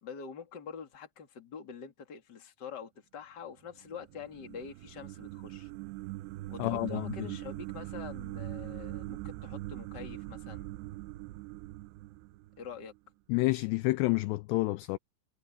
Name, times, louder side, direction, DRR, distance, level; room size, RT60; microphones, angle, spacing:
voice 1, 0.0-5.7 6.5-10.7 12.6-12.9, left 6 dB, 30° left, 2.3 m, -45 dB
sound 1, 3.7-13.0, right 18 dB, 80° right, 2.6 m, -42 dB
voice 2, 6.6-7.3 13.3-15.0, left 22 dB, 85° left, 2.5 m, -29 dB
omnidirectional pair, 5.3 m